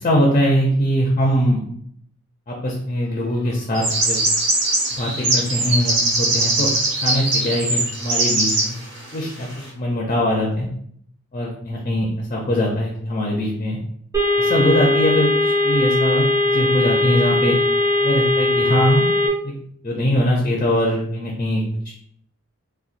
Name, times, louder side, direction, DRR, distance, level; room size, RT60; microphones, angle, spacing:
voice 1, 0.0-1.6 2.5-4.2 4.9-6.7 7.0-8.8 9.1-10.7 11.3-13.8 14.4-17.6 18.0-19.1 19.4-19.5 19.8-21.6, equal, 30° left, -1 dB, 0.4 m, -21 dB
sound 1, 3.7-8.7, right 2 dB, 55° right, 1.0 m, -21 dB
sound 2, 14.1-19.3, left 2 dB, 15° right, 0.6 m, -19 dB
3.9 x 2.2 x 2.5 m, 0.66 s
head